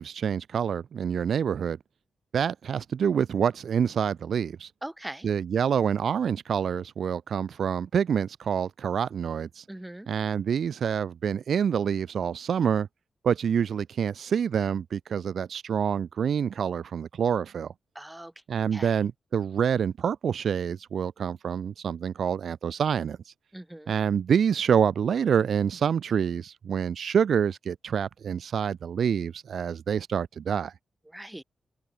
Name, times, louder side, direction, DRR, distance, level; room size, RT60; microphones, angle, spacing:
voice 1, 0.0-1.8 2.3-4.7 5.2-9.6 10.1-12.9 13.2-17.7 18.5-23.2 23.9-30.7, right 7 dB, 75° right, 1.4 m, -27 dB
voice 2, 4.8-5.3 9.7-10.1 18.0-18.3 18.7-18.9 23.5-23.9 31.1-31.4, right 1 dB, 10° right, 3.6 m, -40 dB
open air
cardioid pair, 65°, 0 cm